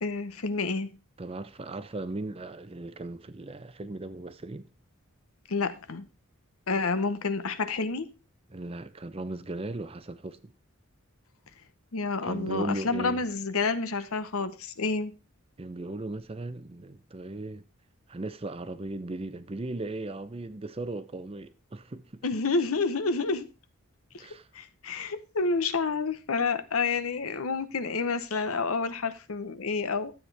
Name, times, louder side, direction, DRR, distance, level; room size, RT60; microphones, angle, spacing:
voice 1, 0.0-0.9 5.5-6.1 6.7-8.1 11.9-15.1 22.2-23.5 24.5-30.1, left 4 dB, 75° left, 0.9 m, -29 dB
voice 2, 1.2-4.7 8.5-10.5 12.2-13.2 15.6-17.7 18.1-22.2 24.2-24.5, right 2 dB, 25° right, 0.5 m, -37 dB
12.5 x 8.0 x 3.4 m
head